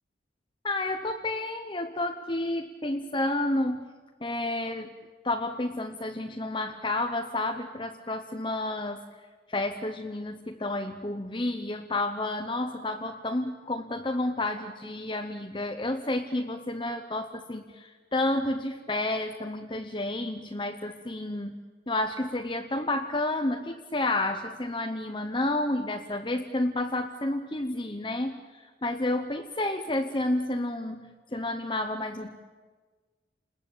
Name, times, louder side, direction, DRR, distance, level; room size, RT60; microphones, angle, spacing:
voice 1, 0.6-3.8 4.2-5.0 5.2-9.0 9.5-21.6 21.9-32.4, left 2 dB, 25° left, 4 dB, 1.0 m, -30 dB
30.0 x 20.5 x 8.9 m, 1.4 s
head